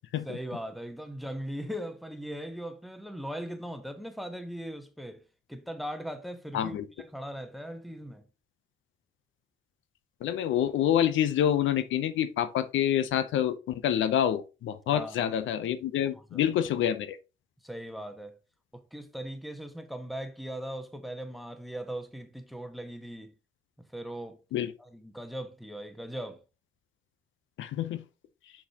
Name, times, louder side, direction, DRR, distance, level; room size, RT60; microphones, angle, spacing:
voice 1, 0.2-5.2 5.5-8.2 14.9-15.2 16.3-16.5 17.6-18.4 18.7-23.3 23.8-24.4 24.8-26.4, equal, ahead, 1.0 m, -39 dB
voice 2, 6.5-6.9 10.2-17.2 24.5-24.7 27.6-28.0, left 10 dB, 75° left, 0.7 m, -27 dB
6.2 x 6.1 x 2.8 m
cardioid pair, 90°, 20 cm